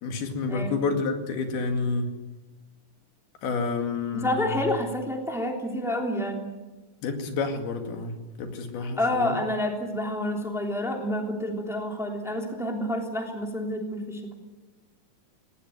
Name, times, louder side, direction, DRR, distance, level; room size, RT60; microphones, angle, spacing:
voice 1, 0.0-2.1 3.4-4.6 7.0-9.3, left 4 dB, 85° left, 5 dB, 4.1 m, -29 dB
voice 2, 4.1-6.6 8.8-14.3, left 1 dB, ahead, 1 dB, 2.7 m, -29 dB
19.0 x 19.0 x 9.4 m, 1.2 s
omnidirectional pair, 4.3 m